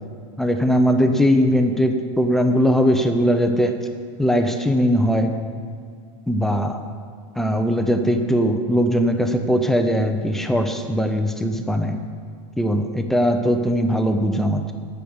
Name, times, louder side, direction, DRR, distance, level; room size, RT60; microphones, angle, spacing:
voice 1, 0.4-3.8 4.2-5.3 6.3-6.8 7.4-12.0 12.6-14.7, equal, ahead, 5 dB, 0.5 m, -20 dB
8.5 x 7.0 x 7.8 m, 2.2 s
supercardioid pair, 160°, 16 cm